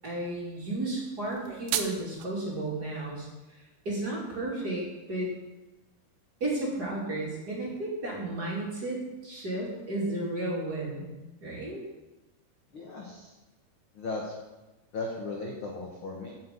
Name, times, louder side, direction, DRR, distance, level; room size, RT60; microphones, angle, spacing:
voice 1, 0.0-3.3 3.8-5.3 6.4-11.1 11.4-11.8, right 2 dB, 30° right, -4 dB, 2.7 m, -33 dB
sound 1, 1.2-2.3, right 10 dB, 80° right, 1.8 m, -33 dB
voice 2, 12.7-13.3 13.9-14.4 14.9-16.4, left 3 dB, 55° left, -1 dB, 1.5 m, -36 dB
9.1 x 6.8 x 8.4 m, 1.1 s
omnidirectional pair, 4.2 m